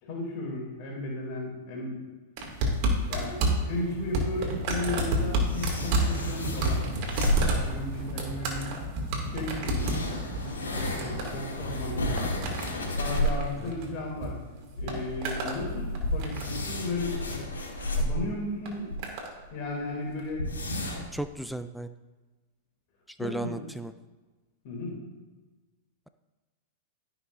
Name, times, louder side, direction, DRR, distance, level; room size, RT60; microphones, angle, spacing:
voice 1, 0.0-2.0 3.1-6.8 7.2-8.7 9.3-9.9 10.7-12.4 13.0-14.4 14.7-17.4 17.9-18.9 19.5-20.5 23.2-23.6 24.6-25.0, left 2 dB, 50° left, -3 dB, 3.1 m, -35 dB
sound 1, 2.4-14.3 14.6-15.6 15.9-16.7 17.6-17.9 18.6-19.3 20.2-20.3, right 1 dB, 50° right, 2.5 m, -30 dB
sound 2, 5.4-7.8 8.8-8.9 9.7-13.5 13.8-13.9 14.2-14.3 14.7-19.0 19.4-19.5 19.7-19.8 20.3-21.2, left 1 dB, 85° left, 2.7 m, -32 dB
voice 2, 21.1-21.9 23.2-23.9, right 1 dB, ahead, 10 dB, 0.4 m, -34 dB
16.5 x 6.0 x 2.7 m, 1.2 s
hypercardioid pair, 105°, 0 cm